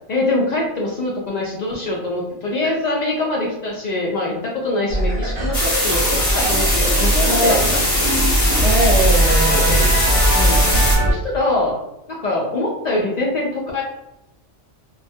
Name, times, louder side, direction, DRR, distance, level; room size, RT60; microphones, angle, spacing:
voice 1, 0.1-7.8 10.3-10.6 11.1-11.8 12.1-13.8, left 2 dB, 65° left, -2 dB, 0.4 m, -23 dB
sound 1, 4.9-11.1, right 1 dB, 50° right, 0.8 m, -19 dB
sound 2, 5.5-11.0, left 1 dB, 25° left, 0.7 m, -21 dB
voice 2, 7.2-7.6 8.6-9.9, right 1 dB, 75° right, -5 dB, 0.3 m, -21 dB
2.2 x 2.1 x 2.6 m, 0.84 s
omnidirectional pair, 1.2 m